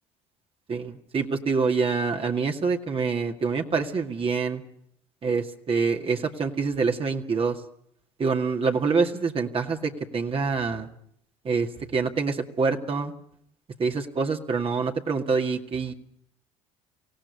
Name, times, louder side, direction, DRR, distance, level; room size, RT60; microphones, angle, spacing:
voice 1, 0.7-4.6 5.2-7.6 8.2-10.9 11.4-13.1 13.8-15.9, right 4 dB, 40° right, 3 dB, 2.1 m, -26 dB
25.0 x 17.0 x 9.6 m, 0.71 s
hypercardioid pair, 70°, 15 cm